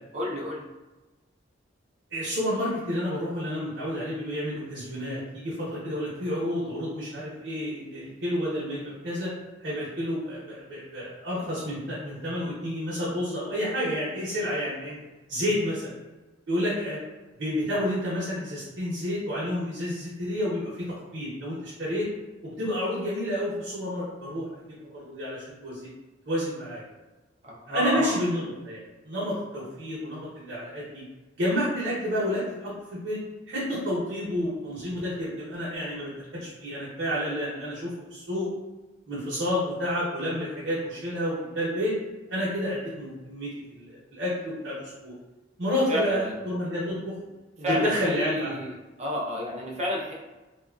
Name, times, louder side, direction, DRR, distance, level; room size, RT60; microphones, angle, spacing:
voice 1, 0.1-0.6 27.4-28.2 45.9-46.4 47.6-50.1, equal, 35° right, -2 dB, 0.5 m, -30 dB
voice 2, 2.1-9.3 9.6-15.0 15.3-15.8 16.5-17.0 17.4-22.1 22.4-24.5 24.8-25.9 26.3-26.8 27.7-31.0 31.4-33.2 33.5-38.5 39.1-41.9 42.3-45.1 45.6-47.1 47.6-48.7, equal, 70° right, -9 dB, 0.8 m, -30 dB
2.9 x 2.3 x 2.3 m, 1.2 s
head